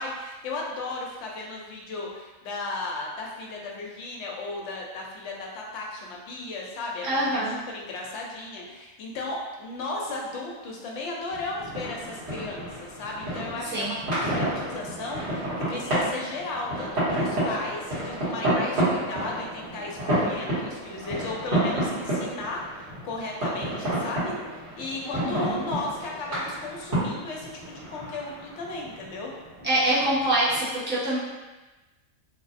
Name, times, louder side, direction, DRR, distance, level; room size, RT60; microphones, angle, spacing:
voice 1, 0.0-29.3, left 2 dB, 65° left, -2 dB, 0.8 m, -35 dB
voice 2, 7.0-7.6 13.7-13.9 25.0-25.7 29.6-31.2, right 1 dB, 10° right, -11 dB, 0.7 m, -25 dB
sound 1, 11.3-30.6, right 1 dB, 55° right, 1.6 m, -30 dB
3.1 x 2.3 x 2.5 m, 1.1 s
omnidirectional pair, 1.4 m